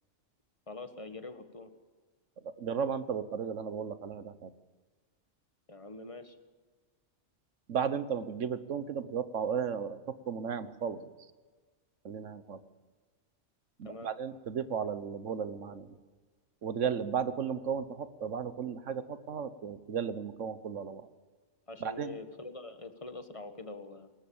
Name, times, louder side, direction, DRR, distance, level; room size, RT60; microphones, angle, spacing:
voice 1, 0.7-1.7 5.7-6.4 13.8-14.1 21.7-24.1, left 3 dB, 25° left, 8 dB, 1.6 m, -44 dB
voice 2, 2.4-4.5 7.7-11.1 12.0-12.6 13.8-16.0 16.6-21.1 21.8-22.2, right 7 dB, 75° right, 13 dB, 1.4 m, -35 dB
21.0 x 18.5 x 7.2 m, 1.4 s
omnidirectional pair, 1.3 m